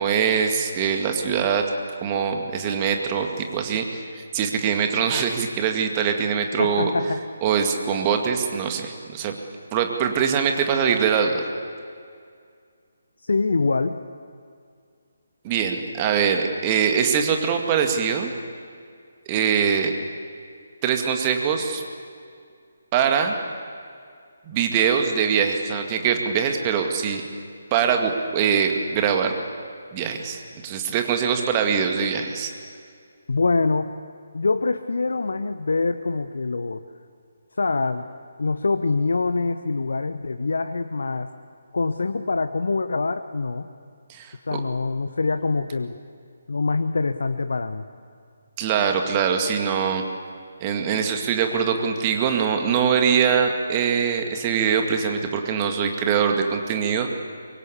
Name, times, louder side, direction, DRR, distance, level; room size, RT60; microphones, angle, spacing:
voice 1, 0.0-1.6 2.0-6.9 7.4-9.4 9.7-11.5 15.4-18.3 19.3-19.9 20.8-21.8 22.9-23.4 24.5-27.2 27.7-29.3 29.9-32.5 44.1-44.6 48.6-50.0 50.6-57.1, right 7 dB, 25° right, 4 dB, 2.1 m, -23 dB
voice 2, 6.6-7.2 13.2-14.0 33.3-33.9 34.3-36.8 37.6-38.1 38.4-41.3 41.7-43.7 44.5-45.9 46.5-47.9, left 3 dB, 60° left, 10 dB, 0.9 m, -24 dB
24.5 x 23.0 x 8.5 m, 2.2 s
figure-of-eight pair, 145°, 0 cm